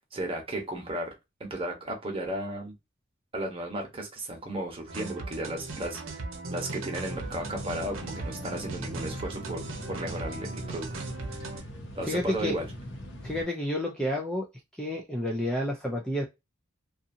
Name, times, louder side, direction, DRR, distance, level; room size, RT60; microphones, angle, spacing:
voice 1, 0.1-1.1 1.4-2.7 3.3-6.2 6.5-9.6 9.9-10.9 11.3-11.5 11.9-12.7, right 1 dB, 30° right, 0 dB, 1.0 m, -34 dB
sound 1, 4.9-11.6, right 2 dB, 75° right, 0.7 m, -38 dB
sound 2, 7.0-13.4, equal, 65° left, 0.7 m, -42 dB
voice 2, 12.0-12.6 13.2-14.5 14.8-16.2, left 1 dB, 5° left, -1 dB, 0.4 m, -30 dB
2.6 x 2.4 x 2.6 m, 0.22 s
head